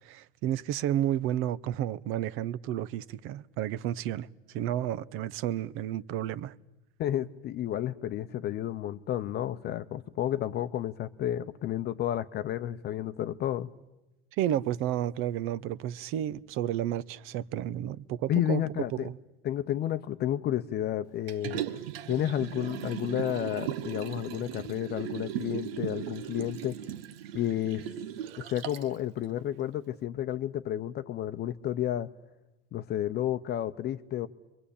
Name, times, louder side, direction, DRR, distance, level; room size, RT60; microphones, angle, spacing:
voice 1, 0.0-4.3 4.5-6.5 14.4-18.6 18.9-19.2, right 12 dB, 45° right, 0.9 m, -31 dB
voice 2, 7.0-13.7 18.3-19.1 19.4-21.8 22.1-26.8 27.3-27.8 28.4-32.1 32.7-34.3, left 12 dB, 35° left, 0.9 m, -31 dB
Liquid, 21.3-28.9 29.4-29.5, right 10 dB, 75° right, 1.3 m, -37 dB
29.0 x 23.0 x 8.6 m
supercardioid pair, 125°, 30 cm